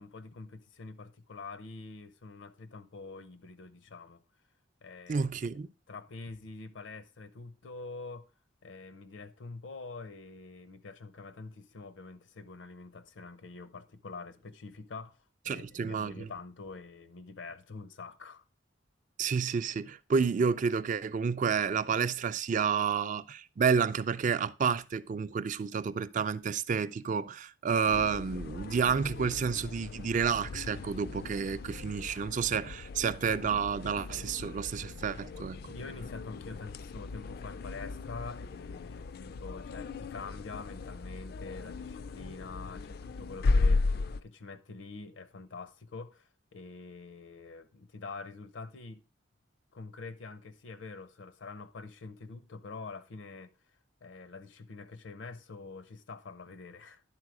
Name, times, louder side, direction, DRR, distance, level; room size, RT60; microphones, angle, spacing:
voice 1, 0.0-4.2 4.8-5.6 5.9-8.3 8.6-15.2 15.4-18.4 35.3-35.5 35.7-43.8 44.2-49.0 49.7-53.5 54.0-57.0, left 4 dB, 80° left, 0.7 m, -46 dB
voice 2, 5.1-5.7 15.5-16.3 19.2-35.6, right 6 dB, 45° right, 0.3 m, -30 dB
sound 1, 27.8-44.2, left 3 dB, 55° left, 0.3 m, -36 dB
10.5 x 4.1 x 4.8 m
head